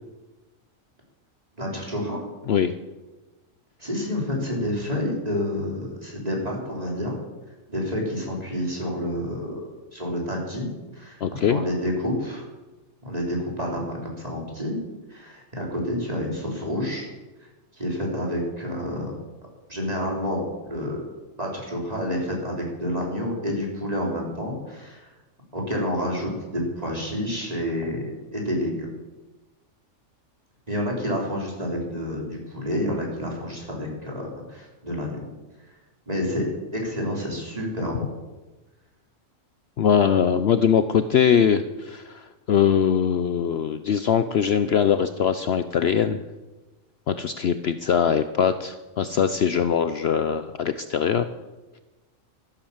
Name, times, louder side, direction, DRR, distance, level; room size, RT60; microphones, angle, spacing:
voice 1, 1.6-2.2 3.8-7.2 7.7-10.7 10.9-12.4 13.0-14.8 15.1-17.1 17.8-19.2 19.7-20.4 20.7-21.0 21.4-25.1 25.5-28.9 30.7-35.2 36.1-38.0, equal, 30° right, -2 dB, 4.3 m, -29 dB
voice 2, 11.2-11.6 39.8-46.2 47.1-51.2, left 8 dB, 60° left, 11 dB, 0.8 m, -22 dB
13.5 x 12.0 x 7.3 m, 1.1 s
omnidirectional pair, 1.4 m